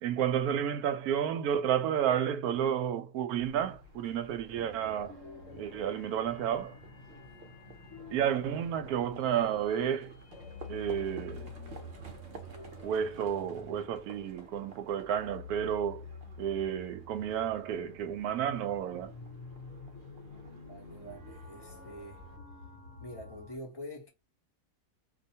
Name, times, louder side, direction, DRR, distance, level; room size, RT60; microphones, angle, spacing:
voice 1, 0.0-5.1 5.6-6.8 8.1-10.1 10.7-11.5 12.8-16.1 16.4-19.1, right 9 dB, 80° right, 1.1 m, -31 dB
Livestock farm animals working animals, 3.4-22.4, right 2 dB, 55° right, 0.7 m, -53 dB
sound 1, 4.5-23.6, left 3 dB, 60° left, 1.1 m, -49 dB
voice 2, 20.5-22.2 23.0-24.1, equal, 25° left, 0.6 m, -46 dB
2.6 x 2.2 x 2.7 m
omnidirectional pair, 1.6 m